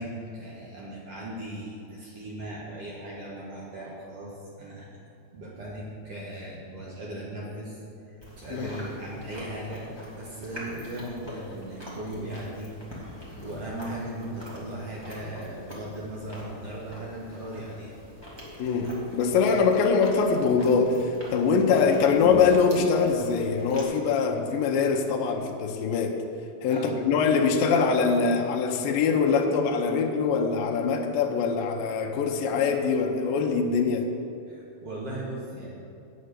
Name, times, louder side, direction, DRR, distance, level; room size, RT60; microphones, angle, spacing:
voice 1, 0.0-4.9 5.3-7.8 8.1-12.7 13.4-17.9 26.7-27.1 34.5-35.7, right 1 dB, 55° right, -5 dB, 1.7 m, -38 dB
Chewing mastication, 8.2-23.8, equal, 30° right, 0.5 m, -43 dB
voice 2, 18.6-26.2 26.6-34.1, left 5 dB, 80° left, 2 dB, 2.1 m, -23 dB
8.8 x 8.0 x 6.8 m, 2.7 s
omnidirectional pair, 5.0 m